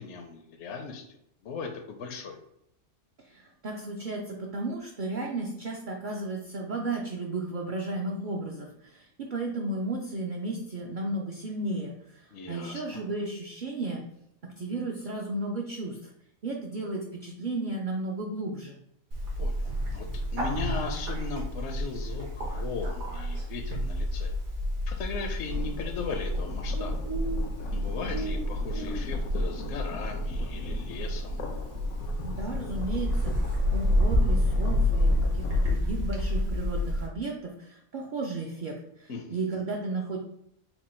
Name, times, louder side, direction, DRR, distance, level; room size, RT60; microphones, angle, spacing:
voice 1, 0.0-2.4 12.3-13.0 19.4-24.3 24.9-27.0 27.7-31.4 39.1-39.4, left 5 dB, 65° left, 4 dB, 0.8 m, -38 dB
voice 2, 3.2-14.0 14.4-16.1 16.4-18.8 32.2-40.2, right 2 dB, 60° right, -1 dB, 0.5 m, -34 dB
Bird, 19.1-37.1, left 1 dB, 75° right, 1.5 m, -29 dB
sound 1, 25.1-35.7, left 4 dB, 90° left, 1.1 m, -42 dB
4.5 x 2.3 x 4.2 m, 0.75 s
omnidirectional pair, 1.5 m